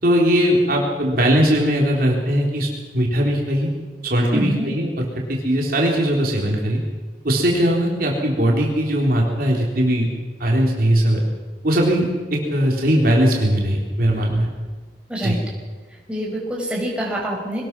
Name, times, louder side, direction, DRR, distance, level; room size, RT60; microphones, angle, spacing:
voice 1, 0.0-3.7 4.0-6.8 7.2-10.1 10.4-11.2 11.6-14.5 15.2-15.4, equal, 55° right, -1 dB, 3.7 m, -19 dB
voice 2, 4.3-4.7 15.1-15.4 16.1-17.6, equal, 5° right, -3 dB, 5.2 m, -25 dB
22.5 x 20.0 x 6.1 m, 1.4 s
head